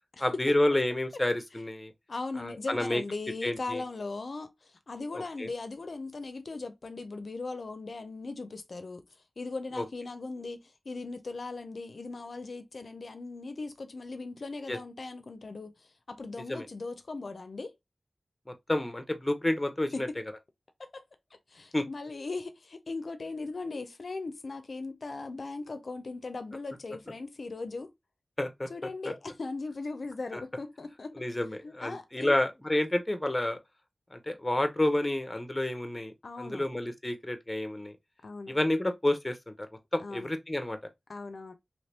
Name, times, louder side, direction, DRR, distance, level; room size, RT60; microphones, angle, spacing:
voice 1, 0.2-1.9 2.4-3.0 3.4-3.8 5.4-5.5 9.8-9.9 14.7-14.8 16.5-16.7 18.5-20.1 21.7-21.8 28.4-28.7 29.0-29.1 30.3-30.4 31.2-33.6 34.1-38.0 38.5-40.8, left 1 dB, 20° left, 0.7 m, -30 dB
voice 2, 2.1-9.0 9.4-17.7 19.9-20.1 20.8-21.0 21.5-27.9 28.7-32.4 36.2-36.6 38.2-38.5 40.0-40.3 41.1-41.5, left 3 dB, 70° left, 0.4 m, -39 dB
3.0 x 2.7 x 3.2 m
wide cardioid pair, 75°, 0 cm